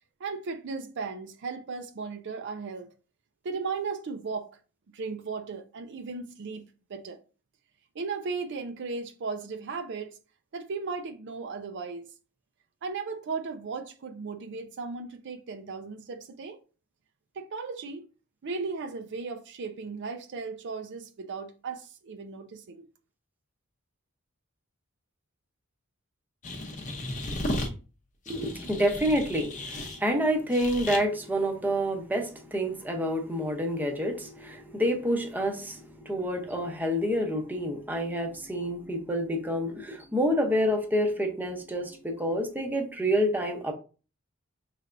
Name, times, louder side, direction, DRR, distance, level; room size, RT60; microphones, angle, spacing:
voice 1, 0.2-2.9 3.4-4.5 4.9-6.6 6.9-7.2 8.0-10.2 10.5-12.1 12.8-16.6 17.4-18.0 18.4-22.8, right 4 dB, 55° right, 0.5 m, -36 dB
sound 1, 26.4-27.7 28.3-30.0 30.5-31.0, left 1 dB, 35° left, 0.7 m, -34 dB
voice 2, 28.3-43.7, equal, 10° right, 0.7 m, -28 dB
5.5 x 3.3 x 2.5 m
head